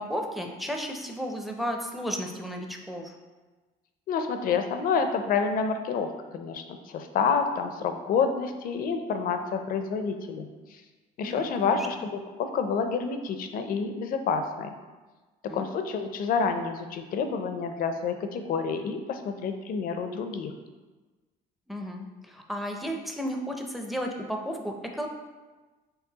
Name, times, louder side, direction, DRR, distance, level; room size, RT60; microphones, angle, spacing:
voice 1, 0.0-3.1 11.2-11.8 15.5-15.7 21.7-25.1, equal, ahead, 2 dB, 0.5 m, -33 dB
voice 2, 4.1-10.8 11.2-12.1 12.4-14.7 15.5-20.5, left 5 dB, 55° left, 7 dB, 0.5 m, -28 dB
4.6 x 3.2 x 2.8 m, 1.3 s
cardioid pair, 110°, 17 cm